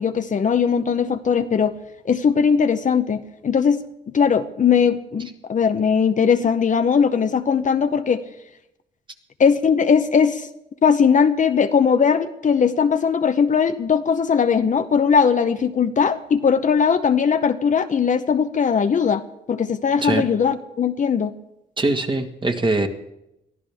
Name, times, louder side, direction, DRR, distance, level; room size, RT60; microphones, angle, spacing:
voice 1, 0.0-1.7 2.0-8.2 9.4-10.5 10.8-19.2 19.5-21.3, left 6 dB, 40° left, 8 dB, 0.8 m, -19 dB
voice 2, 21.8-22.9, right 2 dB, 25° right, 6 dB, 1.6 m, -22 dB
22.5 x 14.0 x 3.5 m, 0.86 s
cardioid pair, 90°, 20 cm